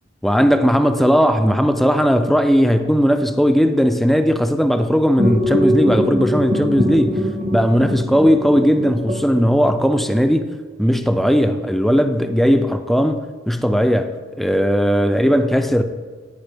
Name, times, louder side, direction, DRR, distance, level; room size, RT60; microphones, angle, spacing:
voice 1, 0.2-10.5 10.8-15.8, equal, ahead, 0.4 m, -17 dB
sound 1, 5.2-10.0, equal, 35° right, 1.0 m, -22 dB
17.0 x 5.9 x 3.4 m
head